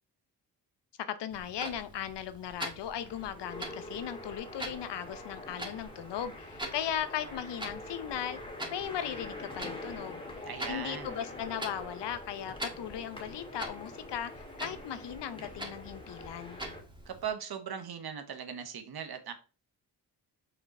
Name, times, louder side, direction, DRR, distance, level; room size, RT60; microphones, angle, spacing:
voice 1, 1.2-8.4 8.7-10.2 10.7-16.6, left 10 dB, 70° left, 0.8 m, -37 dB
Clock, 1.3-17.3, right 1 dB, 10° right, 1.7 m, -45 dB
sound 1, 2.6-16.8, left 2 dB, 10° left, 1.9 m, -45 dB
voice 2, 10.5-11.2 17.1-19.3, right 7 dB, 60° right, 1.2 m, -39 dB
5.7 x 4.0 x 4.2 m
supercardioid pair, 55°, 43 cm